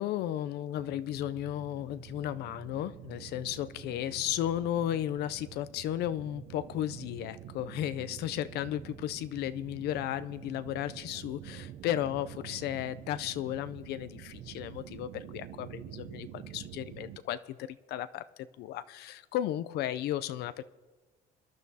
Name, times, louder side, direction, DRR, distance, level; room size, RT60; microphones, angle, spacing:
voice 1, 0.0-18.2 18.6-20.6, left 12 dB, 75° left, 14 dB, 0.5 m, -34 dB
sound 1, 0.7-17.2, right 10 dB, 70° right, 0.6 m, -47 dB
23.5 x 10.5 x 2.8 m, 1.3 s
cardioid pair, 110°, 17 cm